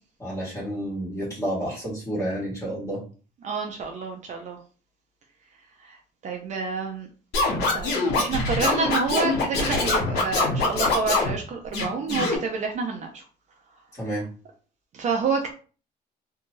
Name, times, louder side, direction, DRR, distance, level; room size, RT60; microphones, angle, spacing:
voice 1, 0.2-3.0 13.9-14.2, right 1 dB, 15° left, -6 dB, 1.5 m, -30 dB
voice 2, 3.4-4.6 5.8-6.0 6.2-7.1 7.7-13.2 14.9-15.5, right 4 dB, 45° right, 2 dB, 0.5 m, -28 dB
Scratching (performance technique), 7.3-11.3 11.7-12.4, left 3 dB, 70° left, 1.2 m, -24 dB
2.6 x 2.3 x 3.0 m, 0.38 s
cardioid pair, 110°, 17 cm